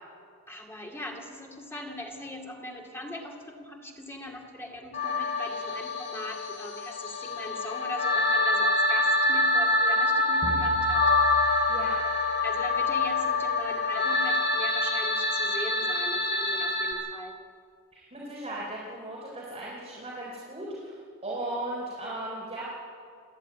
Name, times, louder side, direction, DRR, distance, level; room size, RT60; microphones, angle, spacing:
voice 1, 0.5-11.1 12.4-17.4, left 1 dB, 10° left, 0 dB, 2.5 m, -40 dB
sound 1, 4.9-16.9, left 2 dB, 55° left, 3.9 m, -26 dB
sound 2, 10.4-13.2, right 1 dB, 35° left, 4.1 m, -39 dB
voice 2, 17.9-21.0 21.2-22.6, right 1 dB, 30° right, -5 dB, 4.1 m, -36 dB
28.5 x 11.0 x 9.4 m, 2.2 s
head